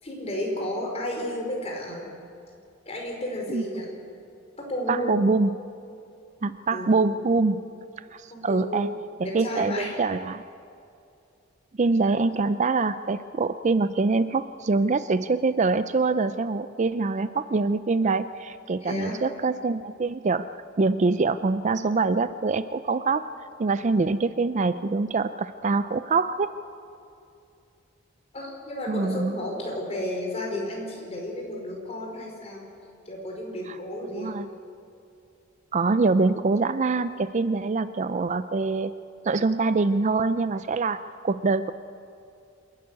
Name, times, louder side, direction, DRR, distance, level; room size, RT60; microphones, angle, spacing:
voice 1, 0.0-2.1 2.8-3.9 4.6-5.2 6.7-7.0 8.3-8.9 9.2-9.9 18.8-19.2 28.3-32.7 33.0-34.4, left 1 dB, 30° left, -1 dB, 4.9 m, -32 dB
voice 2, 4.9-5.5 6.4-7.6 8.1-8.9 9.2-10.4 11.8-20.5 20.8-23.3 23.6-26.5 28.9-29.4 34.1-34.5 35.7-38.9 39.2-41.7, right 3 dB, 35° right, 13 dB, 0.4 m, -24 dB
26.5 x 11.5 x 9.5 m, 2.5 s
head